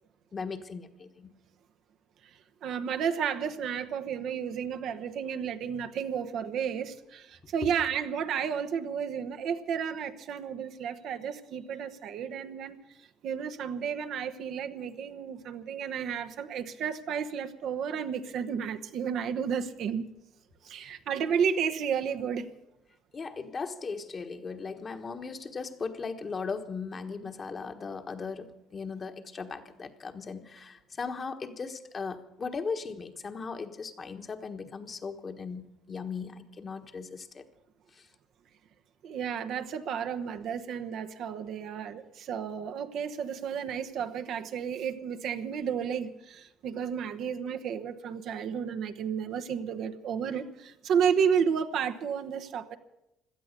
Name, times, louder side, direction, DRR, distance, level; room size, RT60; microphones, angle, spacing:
voice 1, 0.3-1.3 7.6-7.7 20.8-20.9 23.1-37.4 37.9-38.1, left 5 dB, 30° left, 7 dB, 1.4 m, -38 dB
voice 2, 2.6-12.8 13.2-20.1 20.6-22.5 39.0-52.8, right 7 dB, 60° right, 8 dB, 1.1 m, -32 dB
17.5 x 12.0 x 6.7 m, 0.89 s
supercardioid pair, 95°, 0 cm